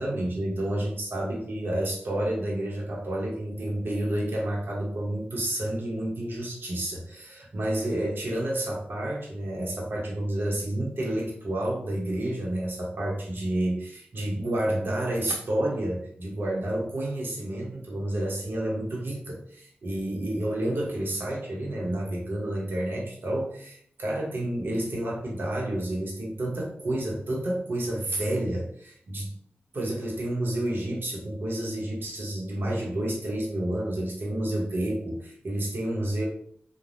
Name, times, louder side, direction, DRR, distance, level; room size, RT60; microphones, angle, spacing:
voice 1, 0.0-29.3 29.7-36.3, right 1 dB, 65° right, -3 dB, 0.8 m, -30 dB
3.2 x 2.1 x 2.6 m, 0.62 s
wide cardioid pair, 95°, 4 cm